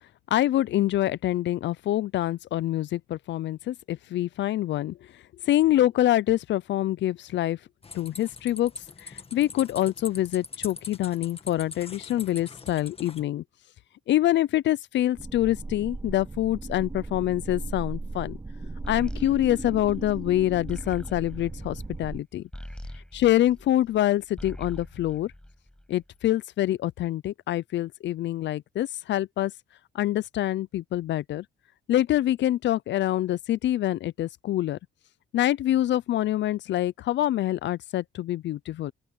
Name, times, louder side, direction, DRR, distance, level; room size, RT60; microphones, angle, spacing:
voice 1, 0.3-5.0 5.4-7.6 7.9-8.7 9.0-13.4 14.1-18.4 18.9-22.4 23.1-25.3 25.9-29.5 29.9-31.4 31.9-34.8 35.3-38.9, left 13 dB, 65° left, 0.5 m, -25 dB
sound 1, 7.8-13.2, left 4 dB, 30° left, 1.8 m, -42 dB
sound 2, 15.2-22.2, right 3 dB, 15° right, 1.2 m, -37 dB
sound 3, 18.8-24.0 24.3-26.0, left 1 dB, 5° left, 7.3 m, -42 dB
open air
cardioid pair, 90°, 20 cm